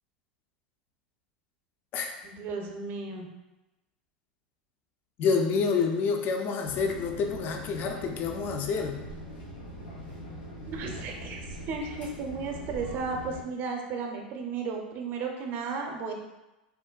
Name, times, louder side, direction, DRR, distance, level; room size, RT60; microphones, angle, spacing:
voice 1, 2.2-3.3 10.7-11.4 11.7-16.1, right 4 dB, 45° right, 2 dB, 0.5 m, -34 dB
voice 2, 5.2-9.0, left 5 dB, 40° left, 3 dB, 0.4 m, -28 dB
sound 1, 6.6-13.4, equal, 75° left, 1.4 m, -42 dB
3.6 x 2.1 x 2.2 m, 1.0 s
hypercardioid pair, 90°, 5 cm